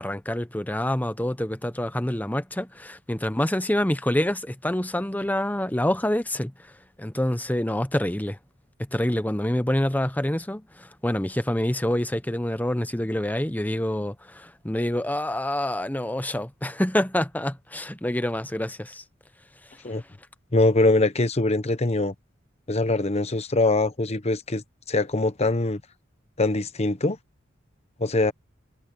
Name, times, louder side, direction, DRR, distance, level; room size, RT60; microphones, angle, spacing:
voice 1, 0.0-6.5 7.0-8.4 8.9-19.0, left 1 dB, 10° left, 0.9 m, -26 dB
voice 2, 20.5-22.1 22.7-25.8 26.4-27.2 28.0-28.3, left 2 dB, 35° left, 1.0 m, -23 dB
head